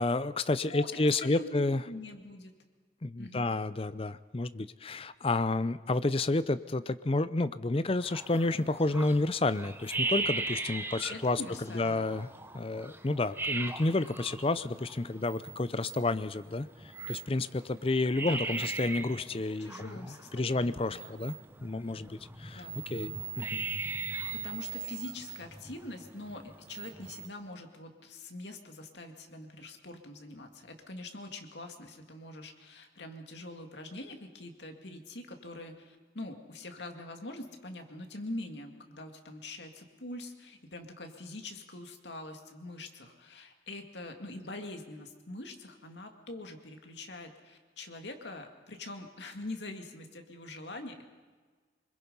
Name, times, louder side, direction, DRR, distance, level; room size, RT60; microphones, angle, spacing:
voice 1, 0.0-1.8 3.0-11.4 11.7-12.3 12.5-16.7 17.1-21.4 21.6-22.6 22.9-23.7, left 2 dB, 30° left, 14 dB, 0.6 m, -30 dB
voice 2, 1.2-2.5 3.2-3.5 11.1-12.0 18.2-18.7 19.6-21.2 22.5-22.8 24.3-51.0, left 2 dB, 70° left, 4 dB, 2.3 m, -44 dB
sound 1, 8.0-27.3, right 3 dB, 10° right, 0.9 m, -39 dB
25.0 x 22.0 x 5.5 m, 1.4 s
head